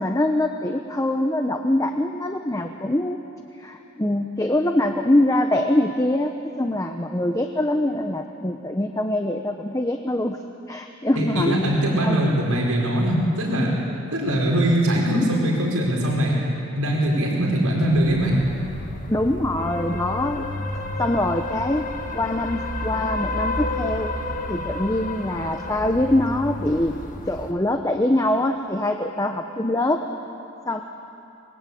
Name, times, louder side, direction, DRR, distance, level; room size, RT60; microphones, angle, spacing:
voice 1, 0.0-3.2 3.6-10.4 10.7-11.8 12.0-12.2 19.1-20.5 21.0-21.9 22.1-24.1 24.5-27.0 27.3-30.0 30.7-30.8, left 1 dB, 15° left, 5 dB, 0.9 m, -23 dB
voice 2, 11.2-13.7 14.1-16.4 16.7-18.4, right 1 dB, 80° right, -2 dB, 5.3 m, -21 dB
sound 1, 17.9-27.5, left 2 dB, 35° left, 1.5 m, -31 dB
27.0 x 21.5 x 8.6 m, 2.7 s
head